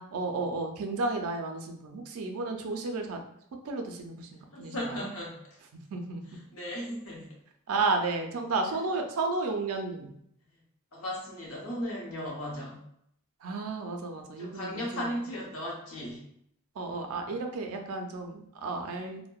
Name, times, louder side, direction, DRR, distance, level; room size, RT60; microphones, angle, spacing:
voice 1, 0.0-3.2 3.6-5.1 5.7-6.2 7.7-10.1 13.4-15.0 16.8-19.2, right 3 dB, 75° right, 4 dB, 0.4 m, -32 dB
voice 2, 4.5-5.4 6.3-7.3 10.9-12.8 14.4-16.2, equal, 70° left, -3 dB, 0.8 m, -36 dB
2.7 x 2.1 x 2.2 m, 0.73 s
head